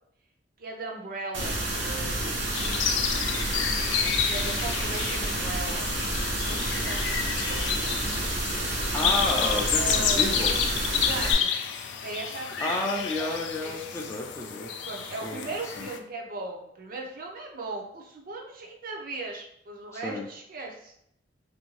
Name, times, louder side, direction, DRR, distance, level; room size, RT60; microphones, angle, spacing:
voice 1, 0.6-2.8 4.2-8.0 9.7-10.4 10.9-11.5 12.0-12.9 13.2-13.8 14.8-20.9, right 3 dB, 50° right, 0 dB, 0.6 m, -38 dB
sound 1, 1.3-11.3, right 1 dB, 80° right, 0.9 m, -29 dB
sound 2, 2.5-16.0, left 8 dB, 85° left, 0.3 m, -30 dB
voice 2, 8.9-10.7 12.6-14.7 15.2-15.9 19.9-20.3, left 2 dB, 15° left, -1 dB, 0.4 m, -31 dB
sound 3, 9.1-11.1, left 2 dB, 45° left, 0.8 m, -39 dB
2.7 x 2.6 x 3.1 m, 0.72 s
head